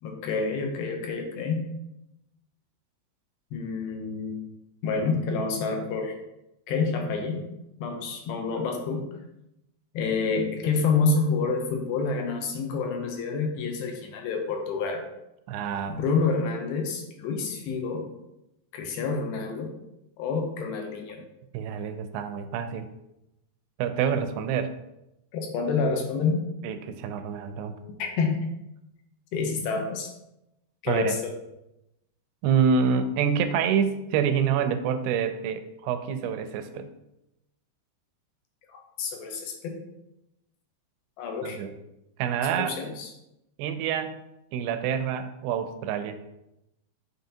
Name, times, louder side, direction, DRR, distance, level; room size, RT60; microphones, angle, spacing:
voice 1, 0.0-1.7 3.5-4.4 4.8-6.2 6.7-7.5 7.8-9.1 9.9-15.0 16.0-18.1 18.7-19.7 20.2-21.2 25.3-26.4 28.0-28.4 29.3-30.1 30.8-31.3 38.7-39.8 41.2-41.6 42.6-43.1, left 4 dB, 75° left, 2 dB, 2.4 m, -28 dB
voice 2, 15.5-16.0 21.5-22.9 23.8-24.7 26.6-27.8 30.9-31.1 32.4-36.9 41.4-41.7 42.2-42.8 43.6-44.2 44.5-46.2, right 7 dB, 85° right, 8 dB, 2.5 m, -27 dB
9.5 x 3.8 x 2.8 m, 0.88 s
omnidirectional pair, 4.9 m